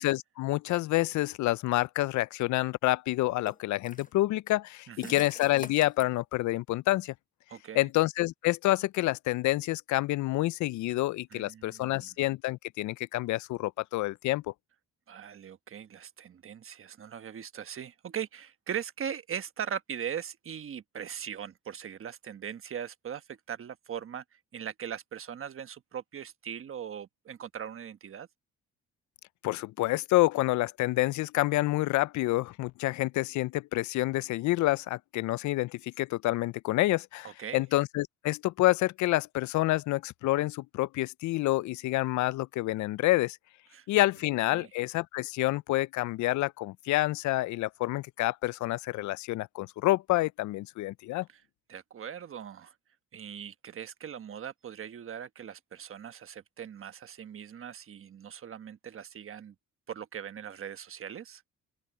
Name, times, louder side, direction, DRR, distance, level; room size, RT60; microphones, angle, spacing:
voice 1, 0.0-7.1 7.7-14.4 29.4-43.4 43.9-51.3, left 18 dB, 70° left, 0.4 m, -28 dB
sound 1, 2.0-2.1 3.5-4.1 5.0-6.1, left 5 dB, 25° left, 1.0 m, -44 dB
voice 2, 4.9-5.2 7.5-7.9 10.9-11.0 11.3-12.1 15.1-28.3 37.2-37.6 43.7-43.9 44.5-44.7 51.3-51.4 51.7-52.7 53.1-59.5 59.9-61.4, right 8 dB, 45° right, 1.2 m, -40 dB
open air
cardioid pair, 90°, 30 cm